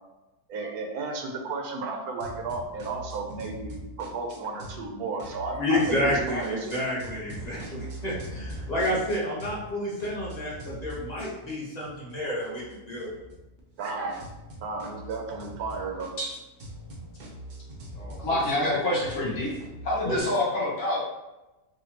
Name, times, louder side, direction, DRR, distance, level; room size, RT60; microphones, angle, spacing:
voice 1, 0.5-6.8 13.8-14.2 14.6-16.1, right 3 dB, 75° right, 2 dB, 1.1 m, -33 dB
sound 1, 2.2-4.9 5.2-9.7 10.0-20.2, equal, 55° right, 0.5 m, -42 dB
voice 2, 5.5-13.1 18.0-18.4 20.0-20.1, left 1 dB, 30° left, -6 dB, 1.1 m, -30 dB
voice 3, 18.2-19.5 19.8-21.1, left 1 dB, 70° left, -7 dB, 1.8 m, -26 dB
4.9 x 2.3 x 2.9 m, 1.0 s
omnidirectional pair, 1.6 m